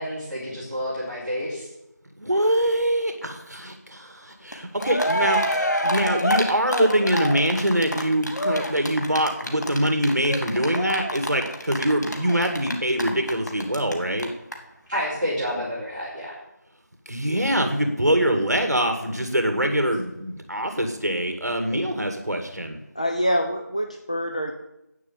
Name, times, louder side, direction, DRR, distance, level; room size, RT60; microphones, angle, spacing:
voice 1, 0.0-1.7 14.9-16.4 21.7-21.8, equal, 30° right, -10 dB, 4.5 m, -29 dB
voice 2, 2.2-5.4 5.8-14.3 17.1-22.8, right 1 dB, 60° right, 5 dB, 2.0 m, -24 dB
Cheering, 4.5-4.6 4.8-13.9 14.2-14.3 14.5-14.6, equal, 70° left, 2.6 m, -26 dB
voice 3, 23.0-24.5, equal, 20° left, 3 dB, 0.6 m, -25 dB
11.0 x 9.1 x 7.6 m, 0.90 s
figure-of-eight pair, 175°, 10 cm